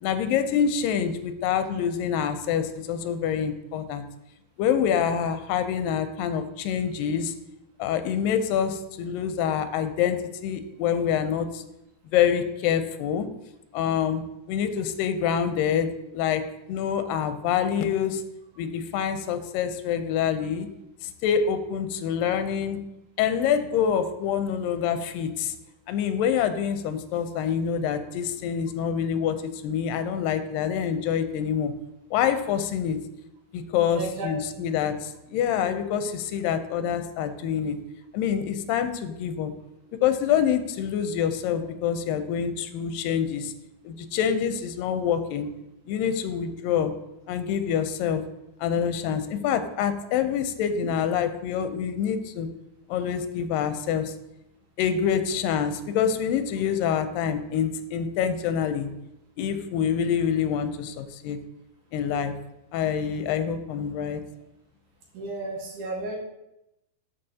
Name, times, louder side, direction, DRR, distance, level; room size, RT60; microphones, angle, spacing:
voice 1, 0.0-4.0 4.6-7.3 7.8-11.6 12.1-13.3 13.7-14.2 14.5-16.4 16.7-18.2 18.6-20.7 21.0-22.8 23.2-25.5 25.9-31.7 32.1-33.0 33.5-37.8 38.1-39.5 40.0-43.5 43.8-45.5 45.9-46.9 47.3-48.2 48.6-52.5 52.9-54.1 54.8-58.9 59.4-61.4 61.9-62.3 62.7-64.2, left 8 dB, 80° left, 9 dB, 2.3 m, -26 dB
voice 2, 33.9-34.3 34.6-34.7 65.1-66.2, right 2 dB, 70° right, -1 dB, 2.4 m, -33 dB
12.0 x 5.6 x 2.8 m, 0.89 s
omnidirectional pair, 4.0 m